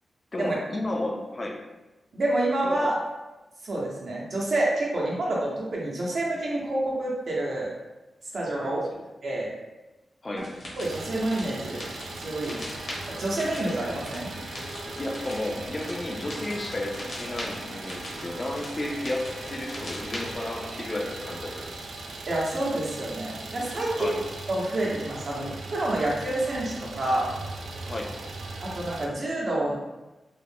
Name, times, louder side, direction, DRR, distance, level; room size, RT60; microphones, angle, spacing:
voice 1, 0.3-1.7 2.6-3.0 8.5-9.0 10.2-10.6 15.0-21.9 23.9-24.2 27.8-28.2, left 1 dB, 30° left, 1 dB, 0.4 m, -33 dB
voice 2, 2.1-2.9 3.6-7.7 8.3-8.8 9.2-9.5 10.3-10.4 10.8-11.8 12.2-12.6 13.2-14.3 22.3-24.2 24.5-27.3 28.7-29.7, right 1 dB, 50° right, -4 dB, 0.8 m, -28 dB
sound 1, 10.4-20.4, equal, 55° left, 0.8 m, -41 dB
Idling, 10.8-29.1, right 2 dB, 85° right, 0.3 m, -39 dB
sound 2, 12.4-21.7, left 1 dB, 10° right, 0.7 m, -45 dB
2.4 x 2.0 x 3.3 m, 1.1 s
wide cardioid pair, 135°, 0 cm